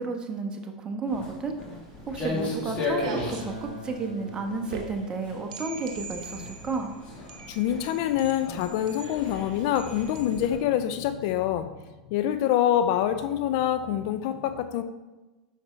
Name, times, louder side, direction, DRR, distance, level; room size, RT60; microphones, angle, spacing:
voice 1, 0.0-1.5 2.1-6.9, right 3 dB, 25° right, 4 dB, 1.2 m, -32 dB
Walk footsteps, 1.1-10.5, left 2 dB, 35° left, 2.7 m, -36 dB
sound 1, 1.7-10.5, right 5 dB, 60° right, 1.0 m, -43 dB
Acoustic guitar, 3.4-8.6, equal, 75° left, 1.4 m, -47 dB
voice 2, 7.5-11.7 12.1-14.8, left 11 dB, 55° left, 9 dB, 0.5 m, -26 dB
9.0 x 6.4 x 3.3 m, 1.1 s
hypercardioid pair, 90°, 4 cm